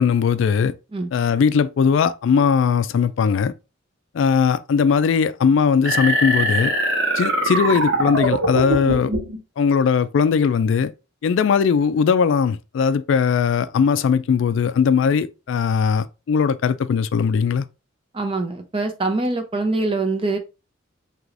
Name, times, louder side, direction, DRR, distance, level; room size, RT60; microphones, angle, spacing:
voice 1, 0.0-0.7 1.1-3.5 4.1-6.7 7.2-9.1 9.6-10.9 11.2-17.7, left 6 dB, 70° left, 0.3 m, -19 dB
sound 1, 5.9-9.4, right 1 dB, 70° right, 1.5 m, -22 dB
voice 2, 18.1-20.4, right 2 dB, 30° right, 0.6 m, -24 dB
4.7 x 3.0 x 2.5 m
head